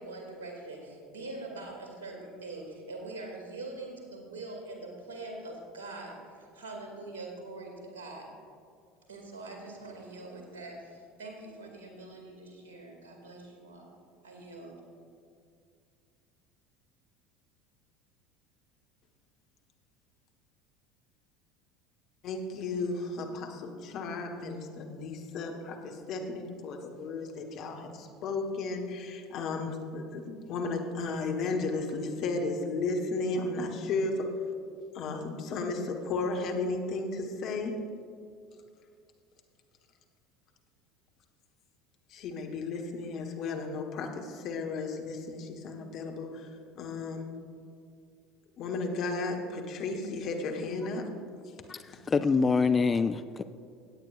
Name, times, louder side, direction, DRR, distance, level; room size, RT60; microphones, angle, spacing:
voice 1, 0.0-8.3 9.1-13.9 14.2-14.7, right 2 dB, 70° right, 1 dB, 2.3 m, -43 dB
voice 2, 22.2-34.3 34.9-37.7 42.1-46.3 46.7-47.2 48.6-51.1, left 3 dB, 45° left, 3 dB, 1.2 m, -34 dB
voice 3, 52.1-53.4, left 4 dB, 25° left, 11 dB, 0.3 m, -25 dB
17.0 x 8.9 x 2.5 m, 2.3 s
figure-of-eight pair, 70°, 0 cm